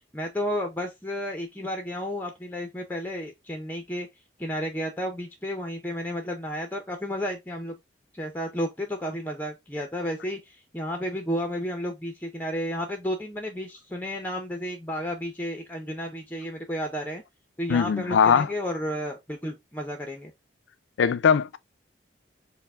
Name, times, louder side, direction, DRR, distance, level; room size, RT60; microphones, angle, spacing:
voice 1, 0.1-4.1 4.4-7.8 8.1-17.2 17.6-20.3, equal, 10° left, 0.5 m, -32 dB
voice 2, 17.7-18.5 21.0-21.6, left 6 dB, 80° left, 0.4 m, -20 dB
4.5 x 2.1 x 3.4 m
head